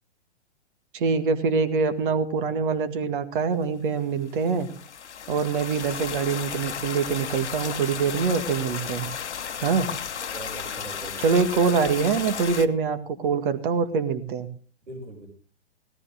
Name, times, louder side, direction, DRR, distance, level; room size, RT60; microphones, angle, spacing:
voice 1, 0.9-4.7 5.3-9.1 9.6-9.9 11.2-14.5, right 5 dB, 45° right, 9 dB, 2.1 m, -24 dB
sound 1, 4.3-12.7, left 7 dB, 75° left, 1.1 m, -34 dB
voice 2, 9.6-9.9 10.2-11.4 14.9-15.3, right 2 dB, 80° right, 1 dB, 5.7 m, -42 dB
17.0 x 13.5 x 3.6 m, 0.38 s
figure-of-eight pair, 125°, 34 cm